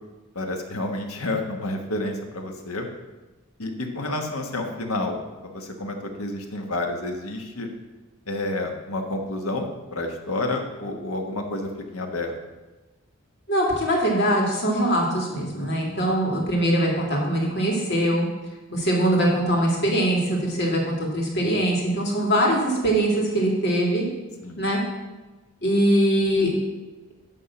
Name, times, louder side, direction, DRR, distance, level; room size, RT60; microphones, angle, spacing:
voice 1, 0.3-2.9 3.6-7.7 8.3-12.3 15.9-16.0 24.4-24.6, left 2 dB, 85° left, 3 dB, 1.3 m, -30 dB
voice 2, 13.5-18.3 18.7-24.1 24.6-24.8 25.6-26.5, right 1 dB, 50° left, -2 dB, 2.3 m, -22 dB
11.0 x 3.6 x 7.1 m, 1.2 s
head